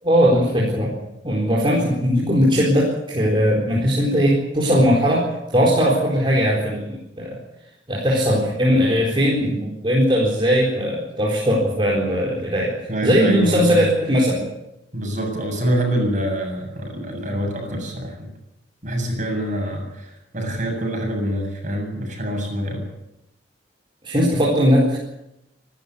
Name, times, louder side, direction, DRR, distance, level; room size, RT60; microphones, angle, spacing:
voice 1, 0.0-1.0 1.2-7.4 7.9-14.5 24.0-25.0, equal, 30° right, -4 dB, 4.2 m, -19 dB
voice 2, 12.9-13.8 14.9-18.3 18.8-22.9, equal, 45° right, 3 dB, 7.7 m, -25 dB
27.0 x 12.5 x 8.3 m, 0.87 s
head